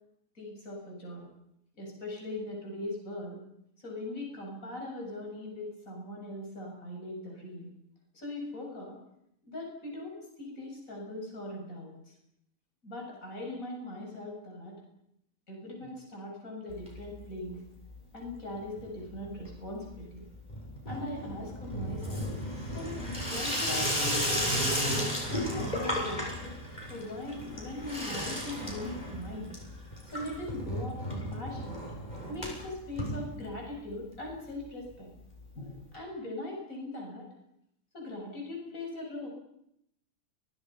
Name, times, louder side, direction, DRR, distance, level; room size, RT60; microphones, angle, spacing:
voice 1, 0.3-1.3 1.8-3.4 3.8-7.7 8.1-9.0 9.5-12.1 12.8-14.7 15.5-17.6 18.1-20.3 20.9-22.4 22.7-26.3 26.9-29.5 30.1-31.9 32.3-35.1 35.5-37.3 37.9-39.3, left 1 dB, 55° left, 0 dB, 8.3 m, -40 dB
Water tap faucet / Sink (filling or washing), 16.7-17.5 17.7-18.3 18.6-33.9 34.2-34.3 34.5-34.6 34.8-34.9 35.9-36.0, equal, 25° left, 7.5 m, -34 dB
29.5 x 23.5 x 5.9 m, 0.77 s
omnidirectional pair, 1.8 m